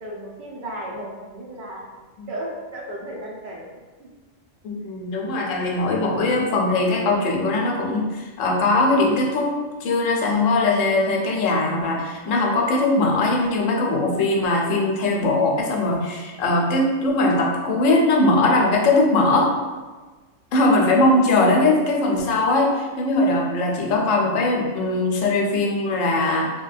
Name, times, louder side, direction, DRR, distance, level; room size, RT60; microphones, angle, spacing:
voice 1, 0.0-1.8 2.3-3.6 4.0-4.1, right 1 dB, 55° right, -3 dB, 0.6 m, -34 dB
voice 2, 4.6-9.5 9.8-19.5 20.5-26.5, left 2 dB, 75° left, -1 dB, 0.9 m, -20 dB
3.3 x 2.2 x 2.4 m, 1.3 s
omnidirectional pair, 1.4 m